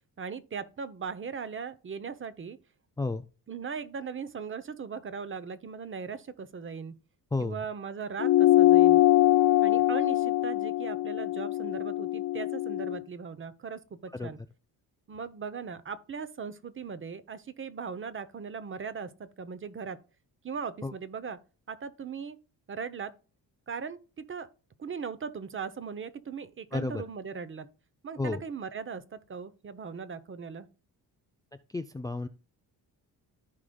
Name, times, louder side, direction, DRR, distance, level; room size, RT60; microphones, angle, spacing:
voice 1, 0.2-2.6 3.5-7.0 7.4-9.0 9.6-14.4 15.1-20.0 20.4-21.4 21.7-22.4 22.7-23.1 23.7-24.5 24.8-27.7 28.0-30.7, right 6 dB, 30° right, 0.7 m, -39 dB
voice 2, 7.3-7.6 14.1-14.3 20.8-20.9 26.7-27.0 28.2-28.4 31.7-32.3, left 3 dB, 10° left, 0.4 m, -32 dB
sound 1, 8.2-13.0, left 15 dB, 60° left, 0.6 m, -23 dB
14.5 x 5.0 x 2.3 m
cardioid pair, 130°, 39 cm